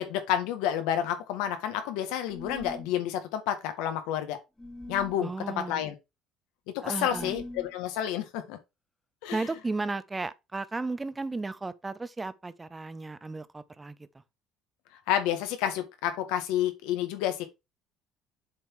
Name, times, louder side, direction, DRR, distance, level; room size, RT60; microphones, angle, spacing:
voice 1, 0.0-4.4 4.9-5.9 6.8-8.6 9.2-9.4 15.1-17.5, left 10 dB, 85° left, 1.5 m, -30 dB
sound 1, 2.3-2.9 4.6-5.2 7.0-7.7, left 1 dB, 10° left, 1.1 m, -41 dB
voice 2, 5.2-5.8 6.8-7.3 9.3-14.0, right 3 dB, 15° right, 0.6 m, -34 dB
7.6 x 3.7 x 4.6 m
cardioid pair, 115°, 0 cm